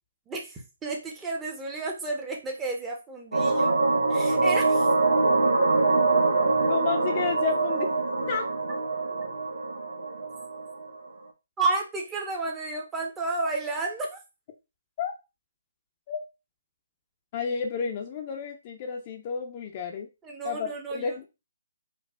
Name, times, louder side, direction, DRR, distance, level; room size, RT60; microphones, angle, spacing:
voice 1, 0.3-3.8 4.1-4.9 11.6-14.2 20.2-21.2, right 3 dB, 15° right, 0 dB, 0.8 m, -31 dB
sound 1, 3.3-10.9, right 3 dB, 70° right, 0.9 m, -24 dB
voice 2, 6.7-7.9 8.3-8.5 15.0-15.1 16.1-16.2 17.3-20.1 20.4-21.2, left 6 dB, 35° left, 3 dB, 0.6 m, -31 dB
4.5 x 2.4 x 2.4 m, 0.27 s
figure-of-eight pair, 135°, 0 cm